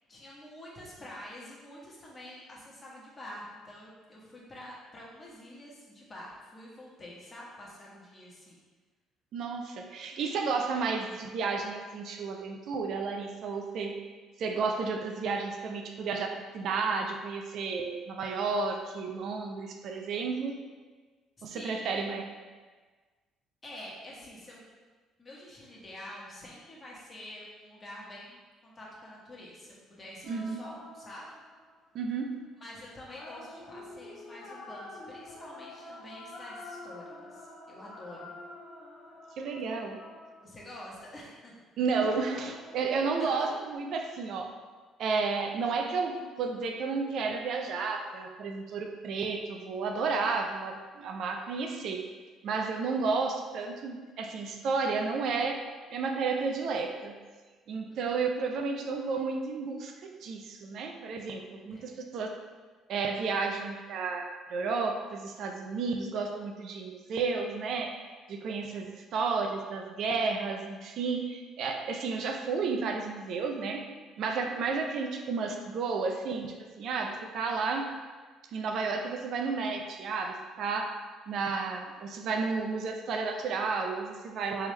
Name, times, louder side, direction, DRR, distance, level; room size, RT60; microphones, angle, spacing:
voice 1, 0.1-8.6 21.5-21.9 23.6-24.6 25.2-31.3 32.6-38.3 40.4-41.6 43.2-43.5 57.7-58.0 61.5-61.9, left 1 dB, 30° left, -5 dB, 1.2 m, -47 dB
voice 2, 9.3-14.0 14.4-20.6 21.4-22.2 30.3-30.6 31.9-32.4 39.4-40.0 41.8-44.5 45.0-52.1 52.4-55.6 55.9-57.2 57.7-62.3 62.9-64.2 64.5-73.8 74.2-77.9 78.5-80.9 81.3-84.7, right 4 dB, 65° right, 3 dB, 0.4 m, -32 dB
sound 1, 30.2-31.9 33.1-41.0 42.2-43.8, left 2 dB, 65° left, 0.8 m, -48 dB
3.4 x 3.4 x 3.2 m, 1.4 s
supercardioid pair, 75°, 0 cm